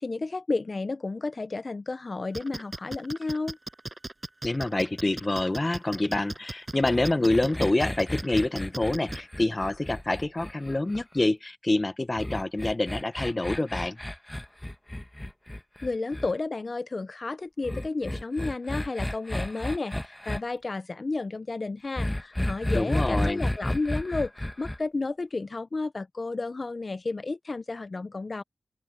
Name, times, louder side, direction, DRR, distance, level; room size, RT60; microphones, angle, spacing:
voice 1, 0.0-3.6 15.8-28.4, left 3 dB, 50° left, 0.6 m, -32 dB
Hi hat ee, 2.3-9.2, right 2 dB, 30° right, 7.6 m, -37 dB
voice 2, 4.4-14.0 22.7-23.4, left 2 dB, 30° left, 1.1 m, -27 dB
sound 1, 6.8-11.2 12.2-16.3 17.6-20.4 22.0-24.8, left 1 dB, 15° left, 1.7 m, -32 dB
open air
cardioid pair, 50°, 0 cm